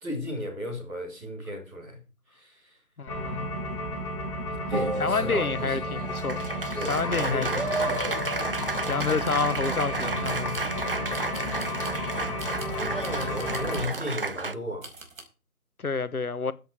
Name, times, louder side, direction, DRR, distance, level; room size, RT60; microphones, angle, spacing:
voice 1, 0.0-2.0 2.3-2.8 4.7-5.8 6.7-8.1 12.7-14.9, left 1 dB, ahead, 1.0 m, -35 dB
voice 2, 3.0-3.5 5.0-6.5 6.9-8.0 8.9-10.6 15.8-16.5, left 4 dB, 70° left, 1.2 m, -29 dB
sound 1, 3.1-13.8, left 1 dB, 20° left, 2.7 m, -32 dB
Applause, 4.7-14.5, right 3 dB, 40° right, 0.6 m, -32 dB
sound 2, 9.2-9.5 10.2-10.7 11.1-12.0 12.4-14.1 14.8-15.2, right 3 dB, 60° right, 5.0 m, -44 dB
14.5 x 8.0 x 4.7 m
figure-of-eight pair, 155°, 45 cm